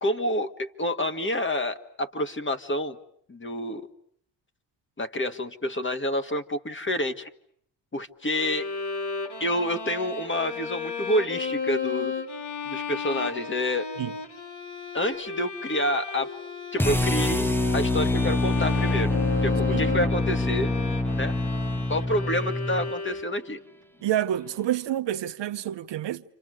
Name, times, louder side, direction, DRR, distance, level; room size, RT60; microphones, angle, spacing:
voice 1, 0.0-3.0 3.3-3.8 5.0-7.3 7.9-8.7 9.4-12.1 12.7-13.9 14.9-16.3 16.7-19.1 19.4-20.7 21.2-21.3 21.9-23.6, left 1 dB, 25° left, 1.9 m, -28 dB
Bowed string instrument, 8.3-23.6, left 5 dB, 55° left, 3.4 m, -34 dB
sound 1, 16.8-22.9, left 2 dB, 5° left, 1.0 m, -25 dB
voice 2, 24.0-26.2, right 12 dB, 65° right, 1.0 m, -28 dB
29.5 x 26.0 x 6.5 m
cardioid pair, 80°, 46 cm